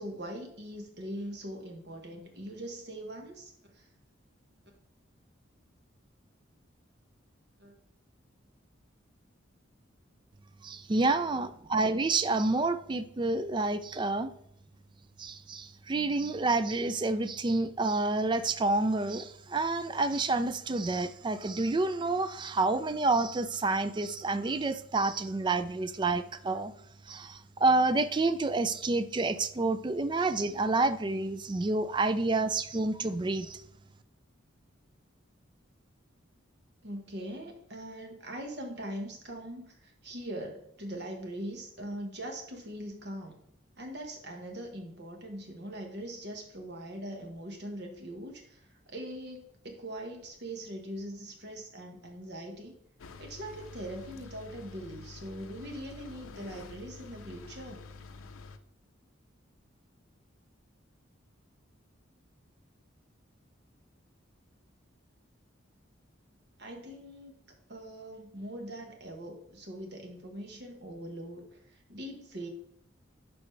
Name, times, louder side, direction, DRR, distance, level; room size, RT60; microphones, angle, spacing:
voice 1, 0.0-3.9 7.6-7.7 36.8-43.4 43.8-48.6 48.9-52.8 53.2-57.8 66.6-67.4 67.7-72.5, right 1 dB, 55° right, 2 dB, 1.4 m, -41 dB
voice 2, 10.6-14.3 15.2-26.7 27.1-33.6, right 3 dB, 25° right, 12 dB, 0.3 m, -29 dB
sound 1, 53.0-58.6, left 3 dB, 90° left, 0.5 m, -48 dB
11.5 x 4.2 x 3.3 m, 0.70 s
head